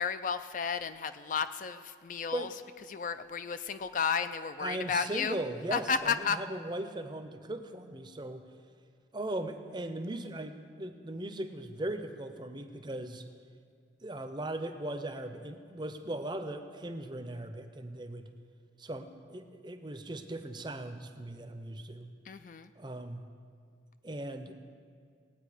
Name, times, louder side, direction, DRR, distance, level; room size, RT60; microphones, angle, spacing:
voice 1, 0.0-2.5 2.9-5.4 5.7-6.4 22.3-22.7, left 6 dB, 40° left, 11 dB, 0.3 m, -33 dB
voice 2, 4.6-8.4 9.1-13.3 14.0-18.3 18.8-22.1 22.8-23.3 24.0-24.6, right 1 dB, 25° right, 8 dB, 0.6 m, -38 dB
18.0 x 8.9 x 4.9 m, 2.2 s
head